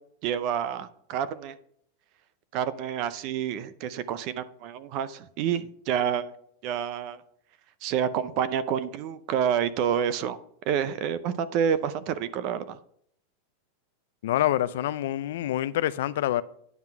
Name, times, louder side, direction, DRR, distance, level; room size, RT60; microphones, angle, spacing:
voice 1, 0.2-1.5 2.5-6.3 6.6-7.2 7.8-10.4 10.7-12.8, right 8 dB, 35° right, 0.5 m, -28 dB
voice 2, 14.2-16.4, left 13 dB, 65° left, 0.4 m, -26 dB
9.4 x 5.8 x 4.6 m
supercardioid pair, 175°, 0 cm